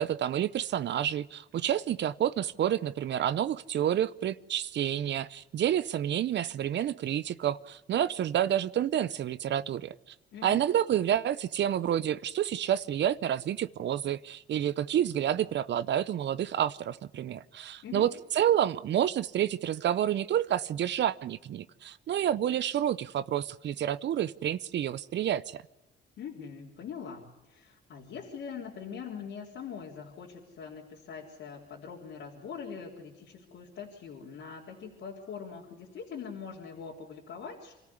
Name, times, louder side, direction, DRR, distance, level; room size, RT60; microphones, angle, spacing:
voice 1, 0.0-9.9 10.4-25.6, right 10 dB, 60° right, 16 dB, 0.7 m, -29 dB
voice 2, 10.3-10.6 17.8-18.1 26.2-37.8, left 6 dB, 70° left, -3 dB, 3.5 m, -43 dB
26.5 x 14.5 x 9.8 m, 1.0 s
cardioid pair, 90°, 20 cm